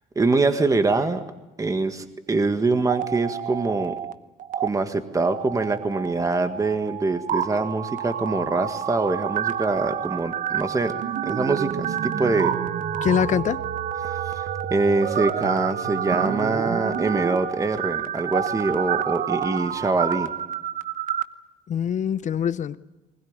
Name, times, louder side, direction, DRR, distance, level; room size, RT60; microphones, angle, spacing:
voice 1, 0.1-1.2 1.6-4.0 4.6-12.6 14.0-20.3, right 3 dB, 20° right, 8 dB, 1.6 m, -24 dB
sound 1, 2.7-4.1 4.4-4.7 5.2-21.2, right 9 dB, 50° right, 1.0 m, -28 dB
voice 2, 13.0-13.6 21.7-22.8, left 8 dB, 45° left, 16 dB, 0.8 m, -23 dB
20.5 x 20.0 x 9.6 m, 1.0 s
cardioid pair, 110°, 17 cm